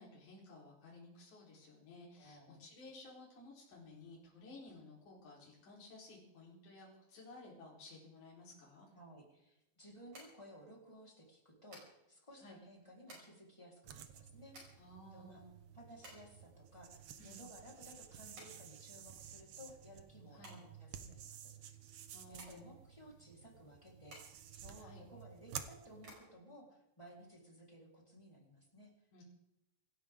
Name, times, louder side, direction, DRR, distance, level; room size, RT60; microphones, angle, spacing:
voice 1, 0.0-8.9 12.4-12.6 14.8-15.5 17.2-17.4 20.3-20.6 22.1-22.8 24.8-25.0 29.1-29.2, left 2 dB, 60° left, -5 dB, 5.5 m, -56 dB
voice 2, 2.2-2.6 8.9-14.8 15.1-15.4 15.7-21.5 22.3-24.2 24.5-28.9, equal, 10° left, -2 dB, 3.7 m, -57 dB
sound 1, 8.9-27.7, right 1 dB, 55° right, 7.1 m, -62 dB
sound 2, 13.8-26.1, right 8 dB, 85° right, 1.2 m, -53 dB
26.0 x 13.5 x 3.7 m, 0.89 s
omnidirectional pair, 4.0 m